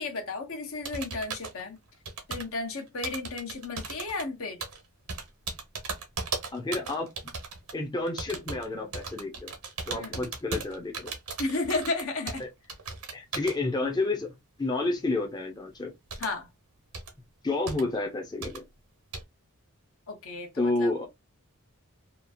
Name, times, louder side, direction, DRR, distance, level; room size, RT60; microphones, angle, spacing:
voice 1, 0.0-1.8 2.3-4.6 9.9-10.2 11.4-12.4 16.2-16.5 20.1-20.9, left 3 dB, 65° left, 0.9 m, -33 dB
sound 1, 0.8-1.6 2.1-2.6 3.0-4.2 4.6-4.8 5.1-7.7 8.1-8.6 8.9-12.4 12.7-13.6 16.1-16.3 16.9-17.1 17.7-17.8 18.4-18.6 19.1-19.2, right 4 dB, 90° right, 1.0 m, -36 dB
voice 2, 6.5-7.1 7.7-9.5 9.9-11.1 12.4-12.5 13.1-14.3 14.6-15.9 17.4-18.7 20.6-21.1, left 2 dB, 20° left, 0.6 m, -30 dB
2.9 x 2.4 x 2.5 m
head